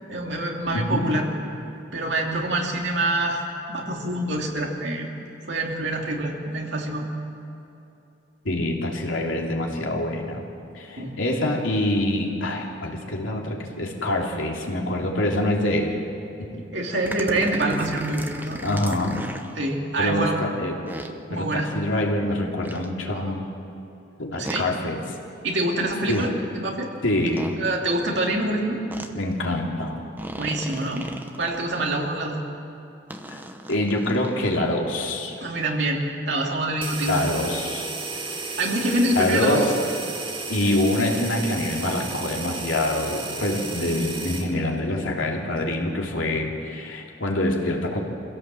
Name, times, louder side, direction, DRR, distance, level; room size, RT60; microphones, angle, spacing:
voice 1, 0.1-1.3 1.9-3.4 3.7-5.1 5.5-7.0 11.0-11.1 16.7-18.6 19.6-20.4 21.3-21.7 24.4-24.6 25.4-26.9 27.6-28.8 30.4-31.0 31.4-32.4 35.4-37.2 38.6-39.7 40.5-40.8, right 1 dB, 65° right, 0 dB, 2.8 m, -26 dB
voice 2, 0.7-1.1 8.4-10.5 10.7-16.0 16.4-16.5 18.6-19.2 20.0-20.8 21.3-23.4 24.2-25.0 26.1-26.2 27.0-27.6 29.1-30.0 33.3-33.4 33.7-35.4 37.1-37.9 38.3-38.4 39.1-39.7 40.5-48.0, left 1 dB, 90° left, 0 dB, 2.9 m, -25 dB
sound 1, 17.0-19.5 20.9-21.1 22.6-22.9 24.4-24.6 25.9-26.3 27.4-27.6 28.9-29.1 30.2-31.9 33.1-34.6, right 1 dB, 10° right, 1.0 m, -36 dB
sound 2, 36.8-44.5, right 3 dB, 25° right, 1.9 m, -33 dB
24.5 x 16.5 x 7.7 m, 2.8 s
head